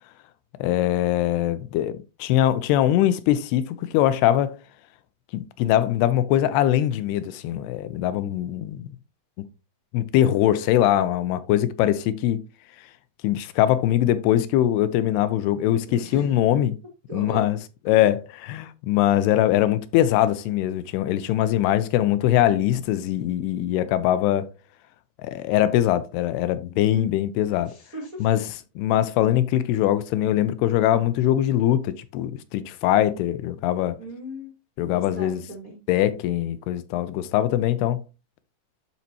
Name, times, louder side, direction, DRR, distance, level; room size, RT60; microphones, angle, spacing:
voice 1, 0.6-4.6 5.3-8.9 9.9-12.4 13.2-16.8 17.1-17.6 17.9-24.5 25.2-27.7 28.2-34.0 34.8-35.4 35.9-38.0, left 12 dB, 85° left, 2.5 m, -22 dB
voice 2, 15.9-16.3 17.1-17.4 17.8-18.0 26.9-27.1 27.7-28.3 34.0-34.5 34.9-35.8, equal, 45° right, 1.1 m, -37 dB
12.0 x 4.1 x 2.8 m
omnidirectional pair, 4.6 m